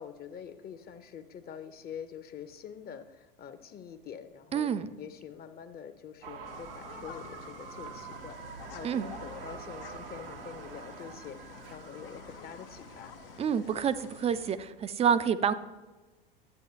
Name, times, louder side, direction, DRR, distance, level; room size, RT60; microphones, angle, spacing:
voice 1, 0.0-4.7 5.0-13.2, left 8 dB, 35° left, 9 dB, 0.8 m, -45 dB
voice 2, 4.5-4.9 8.8-9.1 13.4-15.5, right 7 dB, 20° right, 13 dB, 0.4 m, -28 dB
sound 1, 6.2-14.8, right 7 dB, 70° right, 0.7 m, -47 dB
sound 2, 6.4-14.6, left 9 dB, 70° left, 0.7 m, -49 dB
12.0 x 7.8 x 2.8 m, 1.2 s
hypercardioid pair, 80°, 29 cm